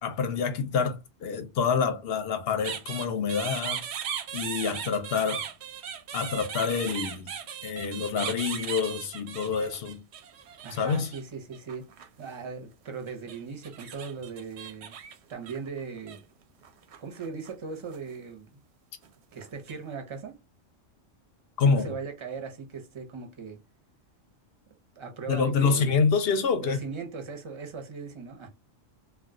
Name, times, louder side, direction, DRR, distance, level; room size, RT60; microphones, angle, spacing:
voice 1, 0.0-3.8 4.3-5.4 6.1-7.3 7.6-10.0 10.7-11.1 21.6-21.9 25.3-26.8, left 5 dB, 60° left, 0.7 m, -27 dB
sound 1, 2.6-11.2 11.5-12.5 13.1-16.2 16.6-17.5 17.8-18.1 19.0-19.7, right 8 dB, 65° right, 0.7 m, -38 dB
voice 2, 10.6-11.8 12.2-15.0 15.3-16.2 17.0-18.6 19.3-20.3 21.6-23.6 25.0-25.9 26.6-28.5, right 5 dB, 30° right, 0.5 m, -38 dB
2.3 x 2.2 x 3.6 m
omnidirectional pair, 1.4 m